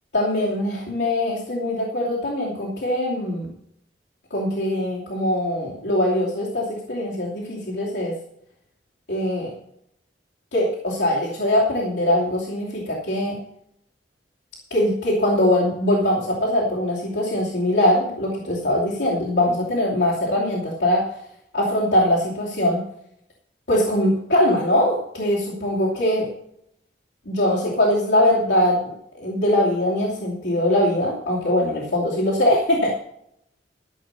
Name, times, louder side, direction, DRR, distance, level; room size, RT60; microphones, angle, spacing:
voice 1, 0.1-3.5 4.3-8.1 9.1-9.5 10.5-13.4 14.7-21.1 21.5-22.8 23.7-26.3 27.3-33.0, left 1 dB, 80° left, -6 dB, 2.8 m, -22 dB
13.5 x 6.8 x 6.8 m, 0.75 s
head